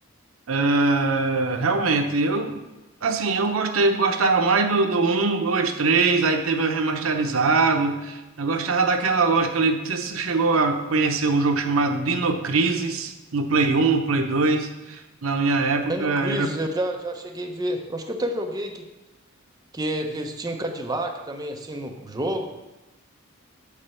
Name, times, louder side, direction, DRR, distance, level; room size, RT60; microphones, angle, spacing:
voice 1, 0.5-2.6 3.0-16.5, right 3 dB, 75° right, 6 dB, 0.8 m, -22 dB
voice 2, 15.9-18.9 19.7-22.5, right 1 dB, 20° right, 3 dB, 0.7 m, -29 dB
8.5 x 4.3 x 6.9 m, 1.0 s
head